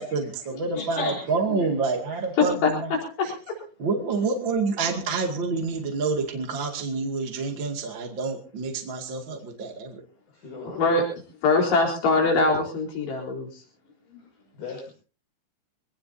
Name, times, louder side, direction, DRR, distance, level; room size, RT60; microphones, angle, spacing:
voice 1, 0.0-2.9 3.2-3.3 3.8-10.0, right 4 dB, 35° right, 1 dB, 2.5 m, -28 dB
voice 2, 0.7-1.2 1.5-1.7 2.4-2.7 3.2-3.6 10.8-11.0 11.4-13.6, left 3 dB, 90° left, 0 dB, 6.3 m, -23 dB
voice 3, 10.3-11.0 14.5-14.9, left 5 dB, 50° left, -2 dB, 7.9 m, -39 dB
24.5 x 18.0 x 2.8 m, 0.38 s
omnidirectional pair, 4.7 m